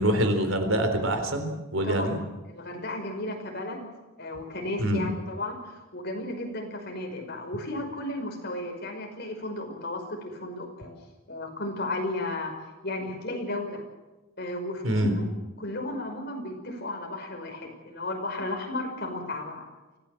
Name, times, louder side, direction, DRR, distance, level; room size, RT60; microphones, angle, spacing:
voice 1, 0.0-2.2 4.8-5.1 14.8-15.2, right 1 dB, 70° right, 6 dB, 3.9 m, -25 dB
voice 2, 2.5-3.9 4.2-10.9 11.3-12.5 12.8-13.8 14.4-15.2 15.6-19.8, left 2 dB, 50° left, 3 dB, 5.4 m, -34 dB
24.5 x 17.0 x 7.8 m, 1.1 s
head